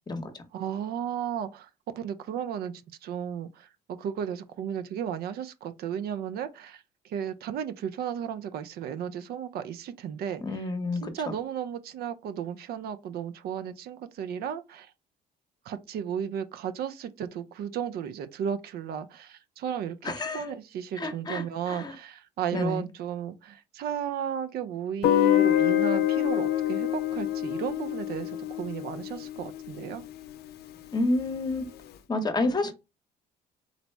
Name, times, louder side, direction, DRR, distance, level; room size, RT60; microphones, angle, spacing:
voice 1, 0.5-1.7 1.9-2.7 3.0-10.4 11.0-14.9 15.7-30.0, right 8 dB, 65° right, 0.5 m, -34 dB
voice 2, 10.4-11.3 20.0-20.6 21.0-21.9 22.5-22.8 30.9-31.6 32.1-32.7, left 2 dB, 25° left, 0.9 m, -29 dB
Guitar, 25.0-29.9, left 12 dB, 70° left, 0.5 m, -26 dB
4.0 x 2.0 x 4.5 m
cardioid pair, 110°, 17 cm